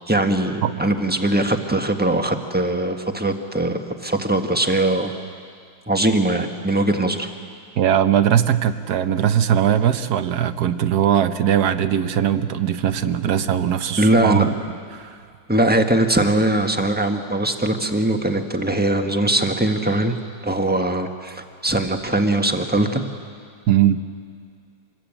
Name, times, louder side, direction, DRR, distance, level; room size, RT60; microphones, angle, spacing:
voice 1, 0.1-5.1 5.9-7.3 14.0-14.4 15.5-20.2 20.4-23.0, right 1 dB, 5° right, 5 dB, 1.1 m, -21 dB
voice 2, 7.8-14.5 14.9-15.2 23.7-24.0, right 10 dB, 65° right, 11 dB, 1.3 m, -20 dB
26.0 x 21.0 x 8.8 m, 2.2 s
omnidirectional pair, 2.0 m